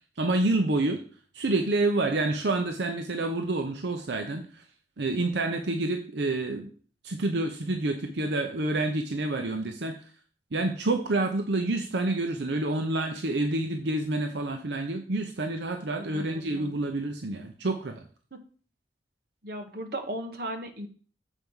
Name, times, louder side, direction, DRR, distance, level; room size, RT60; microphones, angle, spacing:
voice 1, 0.2-1.0 1.3-4.6 5.0-6.7 7.0-10.1 10.5-18.0, right 2 dB, 75° right, 5 dB, 0.7 m, -28 dB
voice 2, 16.0-16.8 19.4-20.9, right 1 dB, 60° right, 5 dB, 1.1 m, -36 dB
7.2 x 4.6 x 5.5 m, 0.42 s
head